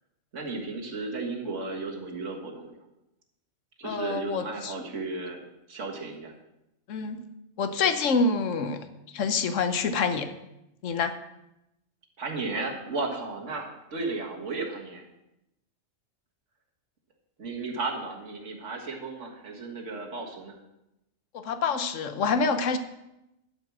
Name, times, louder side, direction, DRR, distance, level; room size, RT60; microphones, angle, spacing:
voice 1, 0.3-2.9 3.8-6.3 12.2-15.0 17.4-20.6, right 3 dB, 70° right, 1 dB, 1.9 m, -34 dB
voice 2, 3.8-4.7 6.9-7.2 7.6-8.9 9.1-10.3 10.8-11.1 21.3-22.8, left 4 dB, 75° left, 9 dB, 1.2 m, -27 dB
11.5 x 5.2 x 6.0 m, 0.89 s
omnidirectional pair, 1.3 m